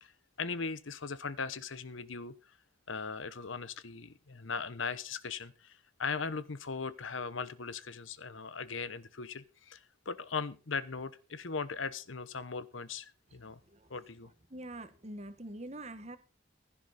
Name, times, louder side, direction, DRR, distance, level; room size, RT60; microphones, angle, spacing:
voice 1, 0.4-2.3 2.9-13.6 13.9-14.3, left 5 dB, 80° left, 1.0 m, -39 dB
voice 2, 13.3-13.9 14.5-16.2, right 1 dB, 35° right, 1.5 m, -45 dB
16.0 x 11.5 x 4.2 m
head